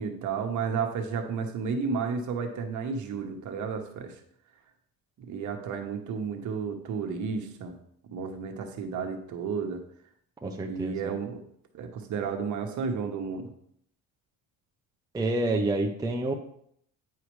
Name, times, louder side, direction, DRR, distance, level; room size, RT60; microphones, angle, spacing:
voice 1, 0.0-4.1 5.2-7.7 8.1-9.8 10.7-11.4 11.7-13.5, right 5 dB, 50° right, 4 dB, 1.1 m, -32 dB
voice 2, 10.4-11.1 15.1-16.3, right 2 dB, 10° right, 2 dB, 0.5 m, -28 dB
9.3 x 4.8 x 3.2 m, 0.68 s
cardioid pair, 135°, 38 cm